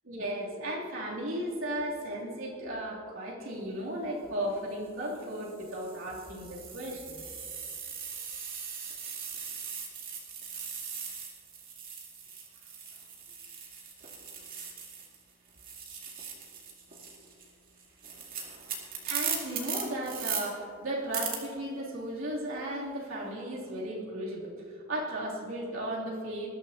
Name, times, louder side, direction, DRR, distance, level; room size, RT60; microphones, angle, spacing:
voice 1, 0.0-7.2 19.0-26.5, right 1 dB, 70° right, -4 dB, 3.1 m, -35 dB
sound 1, 4.1-4.3 5.1-15.2 15.5-20.4 21.1-21.4, right 6 dB, 45° right, 2.4 m, -39 dB
20.5 x 13.5 x 2.9 m, 2.3 s
head